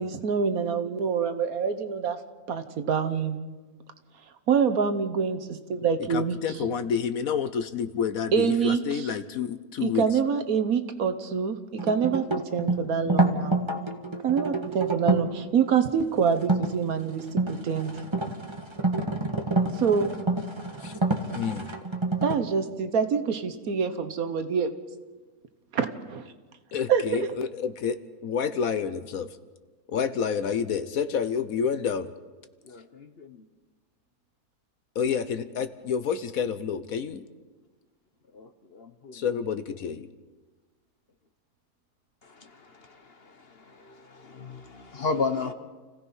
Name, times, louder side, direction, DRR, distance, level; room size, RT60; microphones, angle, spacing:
voice 1, 0.0-2.2 2.5-3.4 4.5-6.6 8.3-9.1 9.8-12.2 12.5-13.6 14.2-18.0 19.7-20.2 22.2-24.7 25.7-26.3 26.9-27.3, right 6 dB, 65° right, 9 dB, 1.5 m, -26 dB
voice 2, 6.1-10.0 20.8-20.9 21.3-21.7 26.7-29.3 29.9-32.1 34.9-37.2 39.1-40.1, left 7 dB, 65° left, 11 dB, 1.3 m, -29 dB
sound 1, 11.8-15.3 16.4-16.7 17.2-22.4, right 2 dB, 20° right, 1.5 m, -27 dB
voice 3, 32.6-33.4 38.3-39.2 42.2-45.5, left 4 dB, 45° left, 8 dB, 1.1 m, -35 dB
29.0 x 16.5 x 5.6 m, 1.3 s
omnidirectional pair, 1.7 m